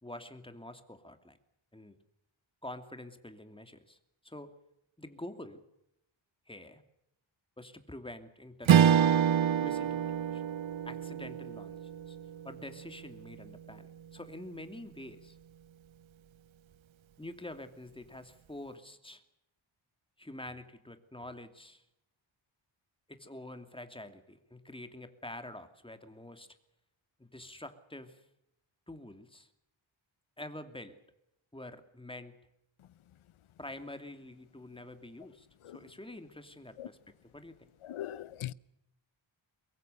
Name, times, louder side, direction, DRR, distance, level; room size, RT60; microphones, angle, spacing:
voice 1, 0.0-1.4 1.7-2.0 2.6-4.0 4.2-4.5 5.0-5.6 6.5-6.8 7.6-9.1 9.6-10.4 10.8-11.8 12.1-12.2 12.4-13.9 14.1-15.4 17.2-19.2 20.2-21.8 23.1-26.5 27.2-28.2 28.9-29.5 30.4-31.0 31.5-32.4 33.6-35.5 35.7-37.7, left 1 dB, 10° left, 2.5 m, -47 dB
Strum, 8.7-13.3, right 9 dB, 70° right, 0.8 m, -27 dB
voice 2, 37.8-38.5, left 12 dB, 80° left, 0.8 m, -40 dB
23.0 x 23.0 x 6.8 m
wide cardioid pair, 110°, 49 cm